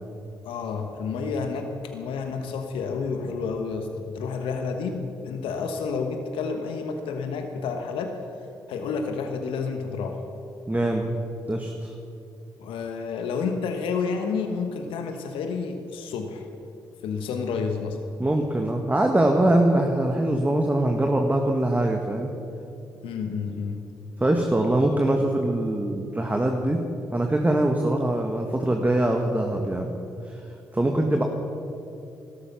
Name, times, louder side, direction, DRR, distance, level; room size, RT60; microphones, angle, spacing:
voice 1, 0.4-8.1 8.7-10.2 12.6-16.5 17.0-18.0 23.0-23.8 24.7-24.8, left 5 dB, 75° left, 5 dB, 1.2 m, -30 dB
voice 2, 10.7-11.2 11.5-11.9 18.2-22.3 24.2-26.8 27.1-29.9 30.3-30.4 30.7-31.2, right 1 dB, 20° right, 2 dB, 1.7 m, -23 dB
16.0 x 13.0 x 6.0 m, 2.7 s
hypercardioid pair, 45°, 9 cm